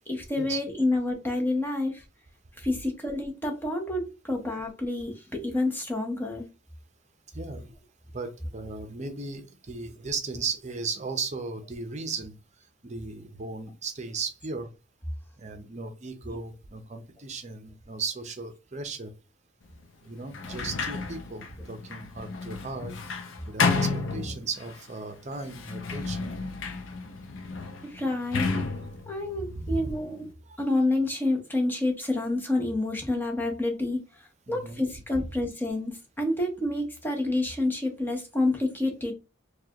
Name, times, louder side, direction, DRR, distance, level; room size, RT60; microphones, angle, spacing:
voice 1, 0.1-2.0 2.6-6.5 27.9-28.5 29.1-30.3 30.6-34.0 34.5-39.1, left 2 dB, 10° left, 0.9 m, -28 dB
voice 2, 7.3-7.7 8.1-12.3 12.8-14.7 15.4-19.1 20.0-22.9 23.5-26.3 29.5-29.9 30.5-30.6 34.5-34.8 35.1-35.3, right 4 dB, 35° right, 0.7 m, -36 dB
Sliding door, 20.3-24.8 25.4-30.3, left 4 dB, 75° left, 0.6 m, -32 dB
4.5 x 2.4 x 2.9 m
head